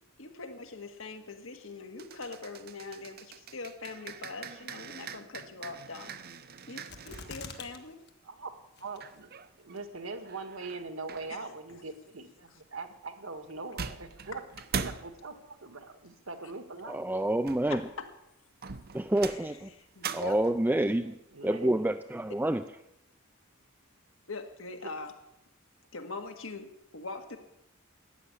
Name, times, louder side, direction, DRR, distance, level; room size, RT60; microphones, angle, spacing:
voice 1, 0.2-6.1 6.7-8.0 11.3-11.4 17.7-18.1 19.2-19.4 19.8-20.4 24.3-25.1 25.9-27.4, left 3 dB, 70° left, 5 dB, 1.8 m, -42 dB
sound 1, 2.0-7.7 9.0-9.8 10.2-11.3 13.4-13.5 13.8-15.2 17.2-18.1 18.6-20.7, right 6 dB, 45° right, 0.8 m, -42 dB
sound 2, 6.9-7.8 8.1-8.2 8.8-9.2 9.8-9.9, left 4 dB, 50° left, 1.6 m, -43 dB
voice 2, 8.8-9.3 9.6-14.4 14.8-17.0 21.3-21.7 24.8-24.9, right 3 dB, 75° right, 7 dB, 1.7 m, -41 dB
voice 3, 16.9-17.8 18.9-19.7 20.1-22.6, right 1 dB, 10° right, 8 dB, 0.4 m, -28 dB
14.5 x 7.8 x 9.9 m, 0.84 s
head